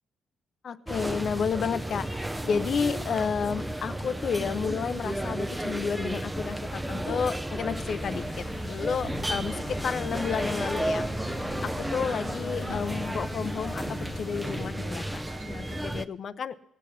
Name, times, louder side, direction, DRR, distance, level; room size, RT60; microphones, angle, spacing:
voice 1, 0.6-11.1 11.6-16.6, left 6 dB, 55° left, 13 dB, 0.7 m, -31 dB
sound 1, 0.9-16.1, right 1 dB, 5° right, 0.6 m, -33 dB
sound 2, 1.1-15.8, right 3 dB, 90° right, 1.9 m, -55 dB
sound 3, 7.7-14.7, left 6 dB, 80° left, 1.1 m, -43 dB
17.5 x 8.5 x 5.8 m, 0.79 s
cardioid pair, 90°, 0 cm